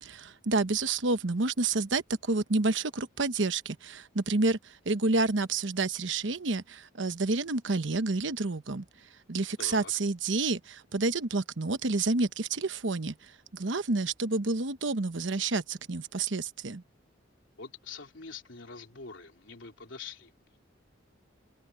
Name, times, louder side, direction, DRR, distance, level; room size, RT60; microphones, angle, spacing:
voice 1, 0.0-16.8, right 3 dB, 70° right, 1.1 m, -29 dB
voice 2, 9.6-9.9 17.6-20.6, left 5 dB, 75° left, 3.4 m, -45 dB
head